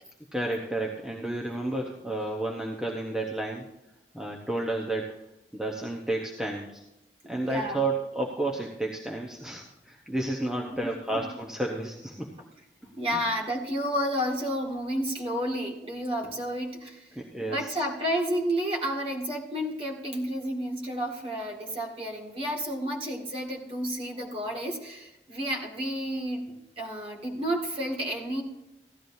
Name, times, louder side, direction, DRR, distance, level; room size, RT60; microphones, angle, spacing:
voice 1, 0.3-3.7 4.1-5.2 5.5-6.8 7.2-12.3 13.1-13.3 17.2-17.8, right 2 dB, 5° right, -1 dB, 0.9 m, -31 dB
voice 2, 7.4-7.8 10.5-11.4 12.9-17.1 17.4-28.4, equal, 30° right, 0 dB, 2.0 m, -31 dB
15.5 x 12.5 x 2.7 m, 0.91 s
head